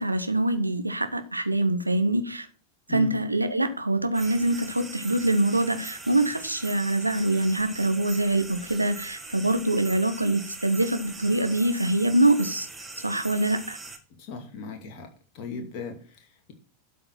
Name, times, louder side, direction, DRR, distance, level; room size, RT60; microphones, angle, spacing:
voice 1, 0.0-2.5 2.9-12.7 13.0-13.8, right 2 dB, 85° right, 1.1 m, -24 dB
sound 1, 4.1-14.0, right 3 dB, 10° right, 1.9 m, -41 dB
voice 2, 14.2-15.1 15.3-16.5, left 3 dB, 40° left, 2.5 m, -37 dB
12.0 x 5.1 x 6.0 m
figure-of-eight pair, 90°, 0 cm